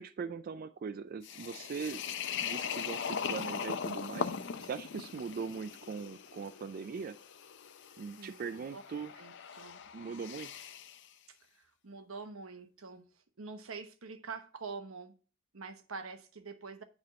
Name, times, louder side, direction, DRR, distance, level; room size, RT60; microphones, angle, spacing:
voice 1, 0.0-4.3 4.6-7.2 8.0-9.1 9.9-10.5, right 5 dB, 45° right, 0.3 m, -40 dB
sound 1, 1.2-11.0, left 7 dB, 60° left, 0.6 m, -40 dB
voice 2, 8.2-8.8 9.2-9.8 11.5-15.2 15.5-16.8, right 4 dB, 90° right, 1.0 m, -46 dB
9.0 x 3.5 x 6.6 m
head